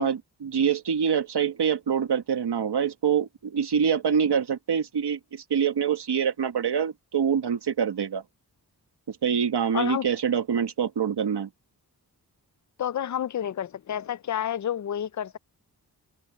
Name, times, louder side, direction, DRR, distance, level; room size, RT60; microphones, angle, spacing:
voice 1, 0.0-8.2 9.1-11.5, right 7 dB, 85° right, 1.6 m, -25 dB
voice 2, 9.7-10.0 12.8-15.4, left 10 dB, 50° left, 0.4 m, -29 dB
open air
wide cardioid pair, 105°, 39 cm